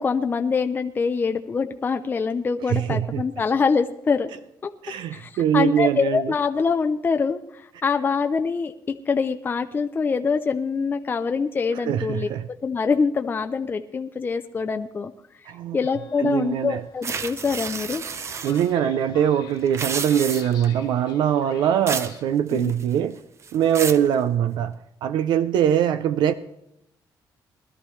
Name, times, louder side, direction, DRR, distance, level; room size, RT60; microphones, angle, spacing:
voice 1, 0.0-4.3 4.6-4.7 5.1-8.7 9.1-12.3 12.6-15.1 15.4-15.5 15.7-18.0 22.5-22.7, left 5 dB, 25° left, 0.5 m, -24 dB
voice 2, 2.7-3.2 4.8-6.3 11.9-12.5 15.5-15.8 16.2-16.8 18.4-23.2 23.5-26.3, right 9 dB, 80° right, 0.5 m, -22 dB
Train, 15.8-22.2, left 8 dB, 80° left, 1.6 m, -47 dB
sound 1, 17.0-18.7 19.6-20.7 21.9-22.2 22.5-23.0 23.4-24.1, right 6 dB, 40° right, 0.6 m, -31 dB
20.0 x 12.0 x 3.2 m
cardioid pair, 135°, 8 cm